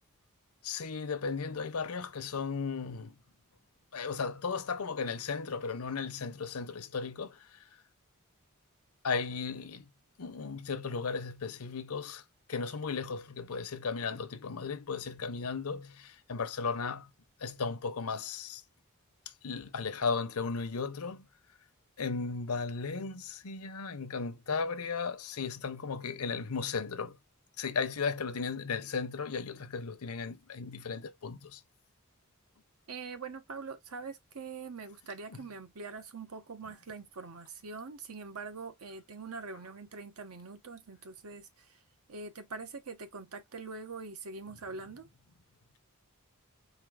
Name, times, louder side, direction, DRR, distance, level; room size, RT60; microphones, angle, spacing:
voice 1, 0.6-3.2 3.9-7.8 9.0-9.9 10.2-17.1 17.4-18.6 19.3-21.3 22.0-27.2 27.6-31.6 35.3-35.4, left 5 dB, 85° left, 0.8 m, -35 dB
voice 2, 32.9-41.8 42.1-45.1, right 4 dB, 90° right, 0.9 m, -43 dB
4.4 x 2.7 x 3.6 m
head